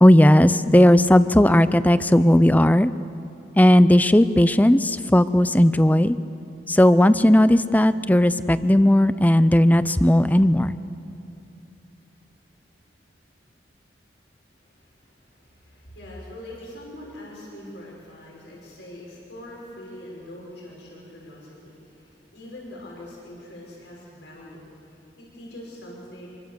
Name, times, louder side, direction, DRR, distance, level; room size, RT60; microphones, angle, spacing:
voice 1, 0.0-2.9 3.6-6.2 6.7-10.7, left 1 dB, 10° left, 14 dB, 0.5 m, -16 dB
voice 2, 14.6-26.3, left 1 dB, 80° left, -3 dB, 6.2 m, -43 dB
26.0 x 24.0 x 6.9 m, 2.8 s
head